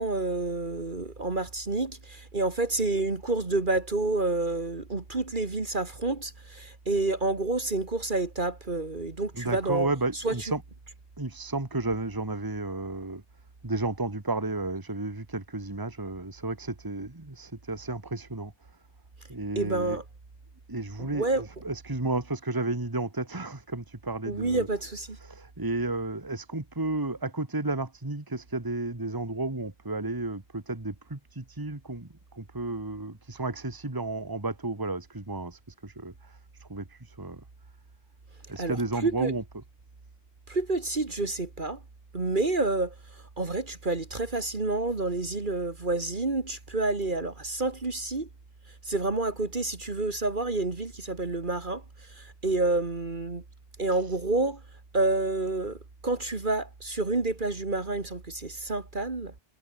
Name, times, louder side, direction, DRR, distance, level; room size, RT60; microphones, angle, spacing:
voice 1, 0.0-9.9 10.2-10.3 19.6-20.0 21.0-21.4 24.3-25.2 38.6-38.8 39.0-39.3 40.5-41.8 42.1-48.3 48.8-53.4 53.8-54.6 54.9-59.3, right 2 dB, 40° right, 2.1 m, -29 dB
voice 2, 9.3-10.6 11.2-13.2 13.6-18.5 19.3-20.0 20.7-24.7 25.1-37.4 38.5-39.6 53.9-54.1, right 2 dB, 15° right, 1.9 m, -32 dB
omnidirectional pair, 1.3 m